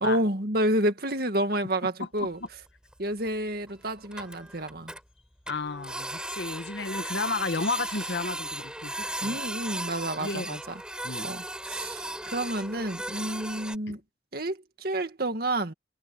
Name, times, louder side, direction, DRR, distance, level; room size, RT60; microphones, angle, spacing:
voice 1, 0.0-2.4 3.0-4.9 9.2-10.6 11.2-14.0 14.3-15.7, right 1 dB, 55° right, 2.1 m, -29 dB
voice 2, 2.0-2.5 5.5-9.4 10.2-10.6 11.0-11.3 13.9-14.0, left 3 dB, 70° left, 1.4 m, -33 dB
Printer, 2.2-2.3 2.5-2.6 2.9-3.0 3.3-3.4 3.7-3.8 4.0-5.0 5.5-13.8, right 1 dB, 5° right, 6.0 m, -36 dB
sound 1, 2.5-2.6 5.1-5.5 7.2-8.2 9.1-9.6, left 6 dB, 35° left, 7.0 m, -52 dB
head